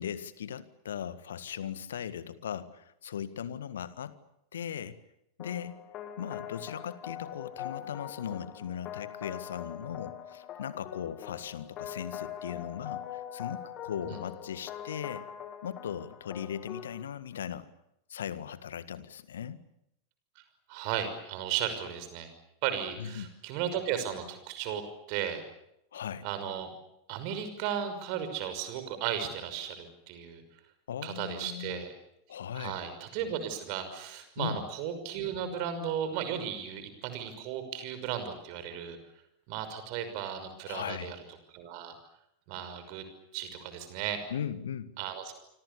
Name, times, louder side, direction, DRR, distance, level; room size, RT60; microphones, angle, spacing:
voice 1, 0.0-4.1 4.5-5.0 5.4-5.8 6.2-15.3 15.6-17.7 18.1-19.6 23.0-23.3 25.9-26.3 30.9-31.8 32.3-32.8 34.4-34.6 40.6-41.1 44.3-44.9, left 9 dB, 65° left, 14 dB, 1.7 m, -38 dB
sound 1, 5.4-17.0, left 10 dB, 35° left, 3.0 m, -43 dB
voice 2, 20.7-22.3 22.6-24.8 25.1-25.4 26.2-26.7 27.1-30.4 31.0-31.9 32.5-39.0 39.5-41.2 41.5-42.0 42.5-43.0 43.3-44.2 45.0-45.3, right 9 dB, 45° right, 10 dB, 5.8 m, -35 dB
27.5 x 26.0 x 7.0 m, 0.81 s
figure-of-eight pair, 90°, 0 cm